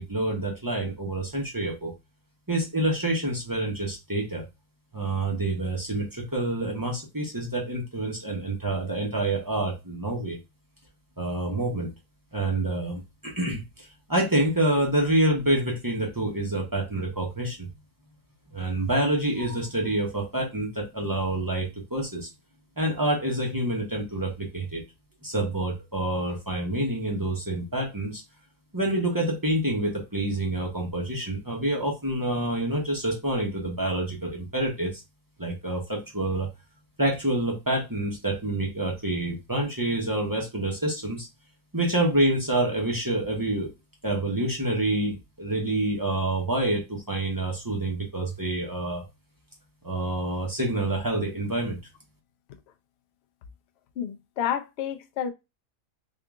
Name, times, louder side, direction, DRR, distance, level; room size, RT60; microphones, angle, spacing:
voice 1, 0.0-1.9 2.5-4.4 4.9-10.4 11.2-11.9 12.3-17.7 18.5-22.3 22.8-24.8 25.2-28.2 28.7-35.0 35.4-36.5 37.0-41.3 41.7-43.7 44.0-49.0 49.8-51.8, right 1 dB, 20° right, 0.8 m, -27 dB
voice 2, 54.0-55.3, left 9 dB, 60° left, 0.7 m, -30 dB
3.6 x 2.5 x 3.5 m
omnidirectional pair, 1.5 m